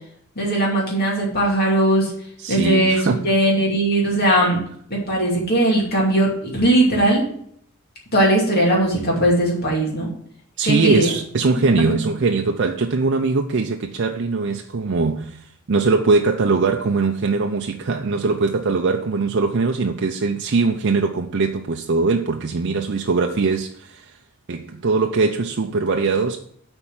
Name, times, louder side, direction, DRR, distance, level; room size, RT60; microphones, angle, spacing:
voice 1, 0.4-2.1 2.5-4.6 4.9-7.3 8.1-10.1 10.6-11.1 11.6-11.7, right 1 dB, 45° left, 2.5 m, -19 dB
voice 2, 2.4-3.3 10.6-24.2 24.5-26.4, right 4 dB, 55° right, 0.5 m, -21 dB
8.3 x 4.4 x 7.3 m
head